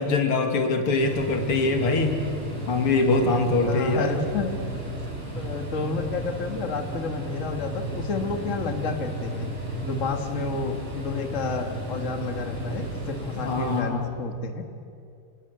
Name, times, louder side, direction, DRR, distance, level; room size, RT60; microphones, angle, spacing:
voice 1, 0.0-2.2 2.7-4.2 13.4-14.1, left 3 dB, 85° left, 5 dB, 3.0 m, -23 dB
sound 1, 1.0-13.8, right 1 dB, 75° right, 6.8 m, -34 dB
voice 2, 3.7-4.5 5.4-9.5 9.8-14.6, left 4 dB, 35° left, 5 dB, 2.0 m, -30 dB
27.5 x 20.0 x 8.1 m, 2.4 s
omnidirectional pair, 2.4 m